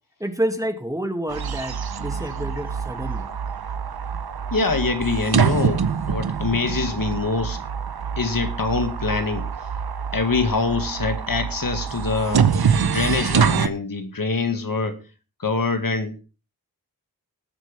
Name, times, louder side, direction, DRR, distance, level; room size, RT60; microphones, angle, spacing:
voice 1, 0.2-3.3, right 1 dB, 10° right, 2.2 m, -28 dB
sound 1, 1.3-13.7, right 6 dB, 85° right, 0.9 m, -25 dB
voice 2, 4.5-7.6 8.2-9.5 10.1-12.5 12.8-15.0 15.4-16.2, left 4 dB, 65° left, 2.0 m, -24 dB
20.0 x 7.8 x 3.4 m
wide cardioid pair, 50°, 37 cm